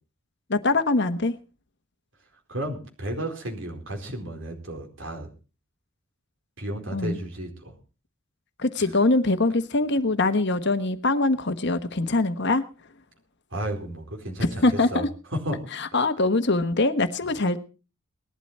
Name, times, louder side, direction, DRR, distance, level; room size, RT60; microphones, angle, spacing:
voice 1, 0.5-1.4 6.9-7.2 8.6-12.6 14.4-15.1 15.7-17.6, left 2 dB, 55° left, 9 dB, 1.2 m, -23 dB
voice 2, 2.5-5.3 6.6-7.7 13.5-15.0 15.3-15.6, right 1 dB, 65° right, 3 dB, 4.4 m, -33 dB
19.5 x 12.0 x 4.3 m, 0.34 s
head